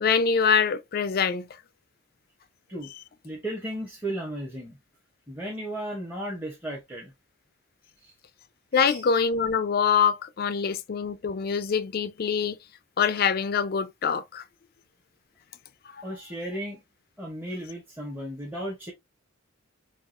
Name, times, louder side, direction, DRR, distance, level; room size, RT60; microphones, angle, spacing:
voice 1, 0.0-1.5 8.7-12.6 13.0-14.4, left 6 dB, 45° left, 0.4 m, -24 dB
voice 2, 3.2-4.8 5.3-7.1 8.0-8.1 8.7-9.0 16.0-16.8 17.2-18.9, right 1 dB, 10° right, 0.8 m, -35 dB
4.6 x 2.3 x 2.4 m
head